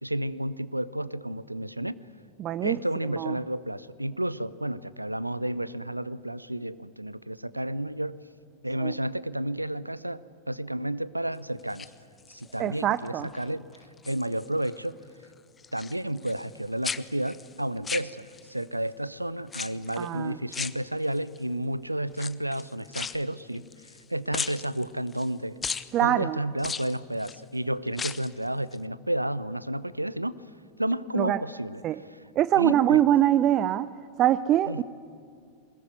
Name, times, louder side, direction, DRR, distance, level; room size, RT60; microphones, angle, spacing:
voice 1, 0.0-2.0 2.6-8.2 8.6-11.9 12.3-13.7 14.1-15.0 15.7-23.7 24.1-25.6 26.0-30.4 30.8-31.8 32.1-32.2 32.6-33.0 34.7-34.8, right 1 dB, 85° right, 18 dB, 0.6 m, -31 dB
voice 2, 2.4-2.8 3.2-3.4 8.8-8.9 12.6-13.3 20.0-20.4 25.9-26.4 31.2-31.4 31.8-32.0 32.4-33.9 34.2-34.8, right 12 dB, 35° right, 15 dB, 0.6 m, -23 dB
sound 1, 11.6-12.6 13.0-13.4 13.7-14.8 15.0-16.6 16.8-18.6 19.5-20.1 20.5-21.4 22.1-24.0 24.3-25.3 25.6-25.9 26.6-27.4 27.9-28.4 28.7-28.8, left 6 dB, 20° left, 0.8 m, -36 dB
22.5 x 21.0 x 9.4 m, 2.4 s
figure-of-eight pair, 90°, 0 cm